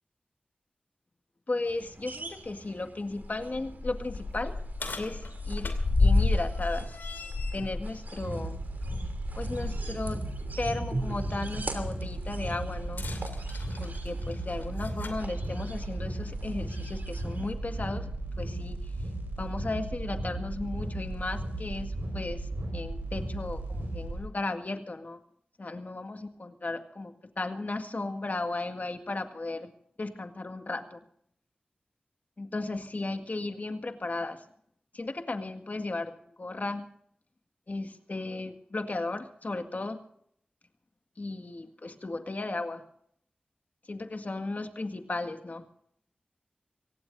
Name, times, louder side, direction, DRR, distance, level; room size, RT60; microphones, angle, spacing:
voice 1, 1.5-4.6 5.0-7.0 7.5-8.6 9.3-10.2 10.6-13.1 13.8-18.1 18.4-18.9 19.4-25.2 25.6-29.7 30.0-31.0 32.4-34.4 34.9-36.9 37.7-40.0 41.2-42.8 43.9-45.6, left 2 dB, 50° left, 6 dB, 1.9 m, -35 dB
sound 1, 1.7-17.5, right 2 dB, 60° right, 3.0 m, -44 dB
sound 2, 1.8-1.9 2.4-2.5 3.1-9.8 10.2-10.4 12.8-15.2 16.2-16.3 17.1-17.2, left 3 dB, 80° left, 2.6 m, -31 dB
sound 3, 8.2-24.2, right 2 dB, 90° right, 7.7 m, -35 dB
24.5 x 18.0 x 2.7 m, 0.67 s
cardioid pair, 50°, 3 cm